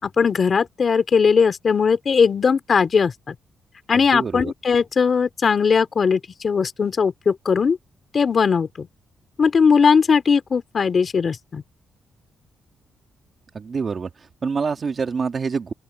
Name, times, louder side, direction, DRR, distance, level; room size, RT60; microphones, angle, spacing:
voice 1, 0.0-3.4 3.9-7.8 8.1-8.9 9.4-11.6, left 5 dB, 40° left, 3.5 m, -19 dB
voice 2, 4.1-4.5 13.5-14.1 14.4-15.7, right 5 dB, 40° right, 2.0 m, -26 dB
open air
cardioid pair, 125°, 0 cm